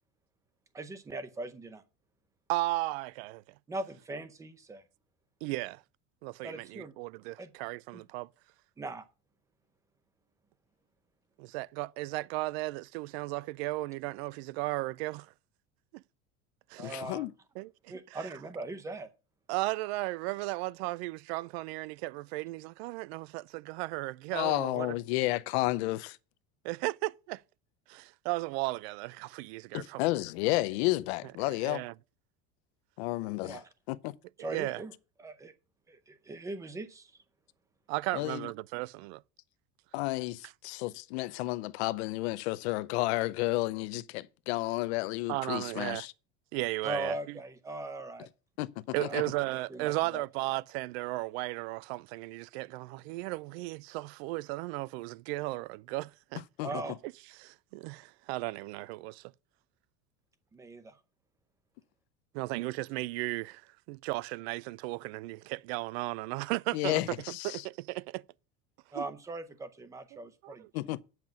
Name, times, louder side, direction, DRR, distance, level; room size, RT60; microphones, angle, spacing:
voice 1, 0.7-1.8 3.7-4.8 6.4-6.9 7.4-7.5 7.9-8.0 8.8-9.0 16.8-17.3 17.9-19.1 33.4-33.7 34.4-34.9 35.2-35.5 35.9-37.1 46.8-48.3 49.0-49.2 49.7-50.2 56.6-57.0 60.5-60.9 68.9-70.7, right 2 dB, 10° right, 0.6 m, -40 dB
voice 2, 2.5-3.4 5.4-5.8 6.2-8.3 11.4-15.3 15.9-16.0 16.7-17.0 17.6-17.7 18.1-18.2 19.5-24.9 26.6-27.4 27.9-30.0 31.4-31.9 34.4-34.8 37.9-39.2 45.3-46.1 46.5-47.4 48.9-56.4 56.8-56.9 57.4-59.2 62.3-63.6 63.9-67.0 67.4-68.2 68.9-69.1 70.1-70.7, right 20 dB, 75° right, 0.5 m, -35 dB
voice 3, 16.8-17.3 24.3-26.2 29.7-31.8 33.0-33.6 33.9-34.2 38.1-38.5 39.9-46.1 48.6-48.7 49.0-49.2 56.6-56.7 66.7-67.6 70.7-71.0, left 19 dB, 85° left, 0.7 m, -31 dB
8.8 x 5.9 x 7.3 m
cardioid pair, 180°, 32 cm